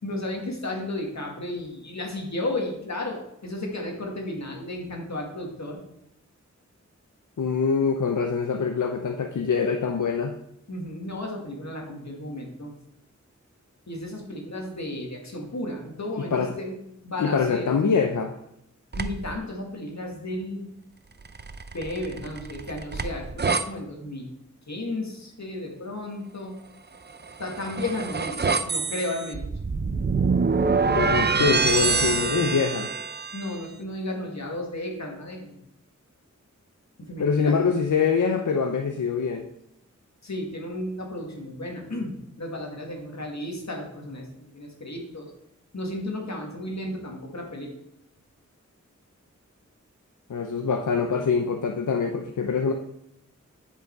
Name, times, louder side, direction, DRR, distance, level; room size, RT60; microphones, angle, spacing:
voice 1, 0.0-5.8 10.7-12.7 13.9-16.8 17.0-17.7 19.0-20.7 21.7-24.3 24.7-26.5 27.4-29.5 33.3-35.6 37.0-37.7 40.2-45.3 45.7-47.7, left 1 dB, 65° left, 0 dB, 2.1 m, -33 dB
voice 2, 7.4-10.3 16.2-16.5 17.2-18.3 30.8-32.9 37.2-39.5 50.3-52.7, left 5 dB, 85° left, 5 dB, 0.7 m, -24 dB
sound 1, 18.9-19.4 21.2-23.6 27.1-33.5, right 4 dB, 35° right, 0.5 m, -26 dB
10.5 x 5.5 x 4.7 m, 0.79 s
wide cardioid pair, 70°, 30 cm